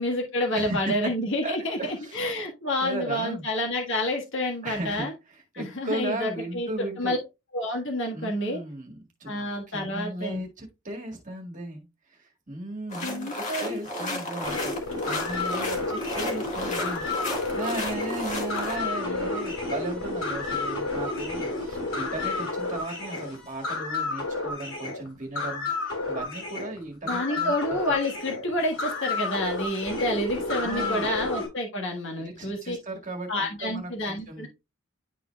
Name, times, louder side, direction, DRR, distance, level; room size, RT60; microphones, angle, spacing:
voice 1, 0.0-5.1 5.5-7.2 7.5-8.6 9.3-10.4 13.0-14.2 19.1-19.5 27.0-32.8 33.3-34.5, left 1 dB, 60° left, 1 dB, 1.5 m, -29 dB
voice 2, 0.5-0.9 1.4-2.4 2.8-3.4 4.6-7.1 8.1-9.3 9.7-11.8 12.1-14.7 15.0-27.8 30.6-31.2 32.1-34.5, right 2 dB, 35° right, 1 dB, 1.8 m, -36 dB
sound 1, 12.9-18.8, left 1 dB, 35° left, 1.7 m, -33 dB
sound 2, 14.4-31.5, left 3 dB, 75° left, 3.7 m, -31 dB
11.0 x 3.9 x 2.3 m, 0.25 s
head